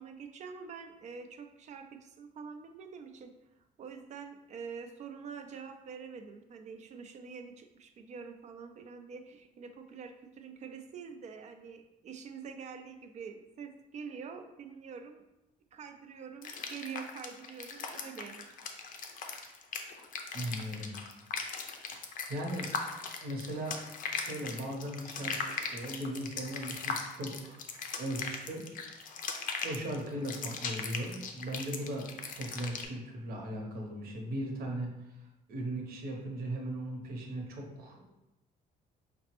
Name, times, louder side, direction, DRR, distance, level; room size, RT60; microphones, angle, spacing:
voice 1, 0.0-3.3 3.8-15.2 15.7-18.5, right 6 dB, 45° right, 6 dB, 0.4 m, -46 dB
sound 1, 16.4-32.9, left 5 dB, 55° left, 0.5 m, -39 dB
voice 2, 20.3-20.9 22.3-22.7 23.2-23.8 24.1-27.6 28.0-28.7 29.6-38.1, right 1 dB, 60° right, 0 dB, 0.9 m, -38 dB
5.0 x 2.1 x 2.9 m, 0.95 s
cardioid pair, 110°, 17 cm